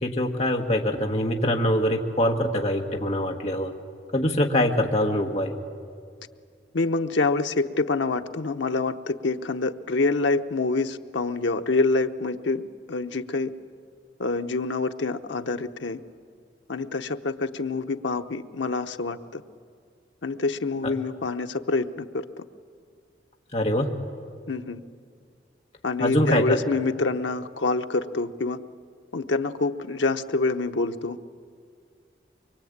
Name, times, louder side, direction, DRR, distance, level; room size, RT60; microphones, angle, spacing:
voice 1, 0.0-3.7 4.1-5.5 20.8-20.9 23.5-23.9 26.0-26.6, left 1 dB, 35° left, 1 dB, 1.6 m, -24 dB
voice 2, 6.7-13.5 14.2-16.0 16.7-19.4 20.2-22.4 24.5-24.8 25.8-28.6 29.1-31.2, left 3 dB, 90° left, 8 dB, 0.9 m, -26 dB
24.0 x 22.5 x 8.7 m, 2.2 s
head